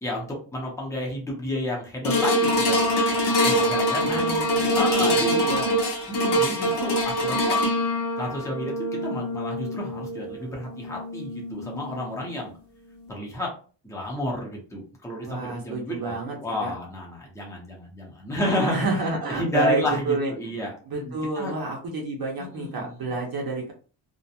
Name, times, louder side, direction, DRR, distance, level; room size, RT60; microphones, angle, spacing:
voice 1, 0.0-5.5 6.1-7.6 8.2-8.7 9.0-12.5 13.1-13.5 13.8-21.5 22.4-23.1, left 1 dB, 5° left, -2 dB, 0.6 m, -31 dB
sound 1, 2.0-12.4 13.0-13.1, equal, 65° left, 0.8 m, -24 dB
voice 2, 3.9-4.8 5.1-5.7 15.2-16.4 16.6-16.7 18.4-20.3 20.9-23.7, right 2 dB, 55° right, -1 dB, 0.6 m, -29 dB
2.5 x 2.1 x 2.7 m, 0.39 s
wide cardioid pair, 175°, 44 cm